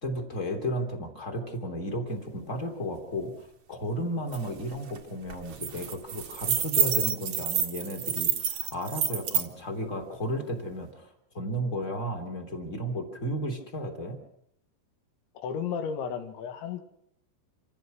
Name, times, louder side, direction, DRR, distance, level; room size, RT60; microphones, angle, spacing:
voice 1, 0.0-14.2, equal, 20° left, 5 dB, 2.6 m, -34 dB
sound 1, 4.3-4.4 4.7-5.0 5.3-9.5, right 8 dB, 70° right, 1.4 m, -28 dB
voice 2, 15.4-16.8, left 7 dB, 75° left, 8 dB, 4.0 m, -33 dB
28.0 x 16.0 x 6.2 m, 0.72 s
omnidirectional pair, 5.6 m